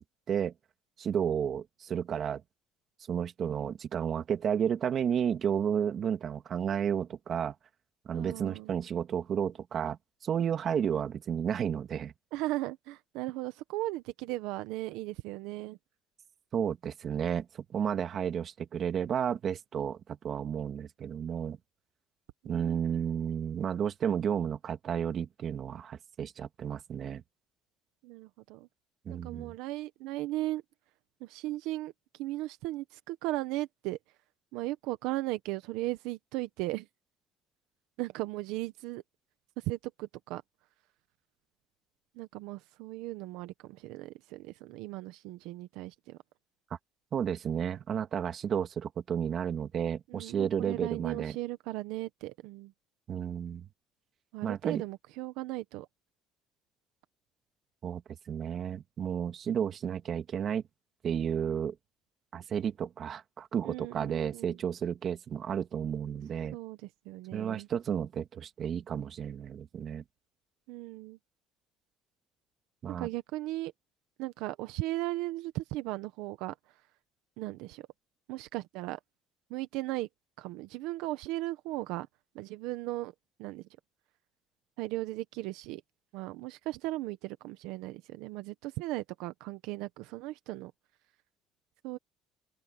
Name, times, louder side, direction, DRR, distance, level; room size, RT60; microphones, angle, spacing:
voice 1, 1.0-2.4 3.1-7.5 8.1-10.0 10.2-12.1 16.5-21.6 22.4-27.2 29.1-29.5 47.1-51.4 53.1-53.7 54.4-54.8 57.8-58.0 58.3-60.6 61.0-61.7 62.3-66.6 67.3-70.0 72.8-73.1, right 8 dB, 40° right, 2.2 m, -32 dB
voice 2, 8.1-8.7 12.3-15.8 28.0-28.7 29.1-30.6 31.2-34.0 34.5-36.9 38.0-39.0 39.6-40.4 42.1-46.2 50.1-52.7 54.3-55.9 63.6-64.6 66.5-67.7 70.7-71.2 72.9-73.7 74.2-76.8 77.4-77.9 78.3-79.0 79.5-80.1 80.4-82.1 82.3-83.1 83.4-83.7 84.8-85.8 86.1-90.7 91.8-92.0, right 18 dB, 85° right, 1.0 m, -37 dB
open air
cardioid pair, 140°, 0 cm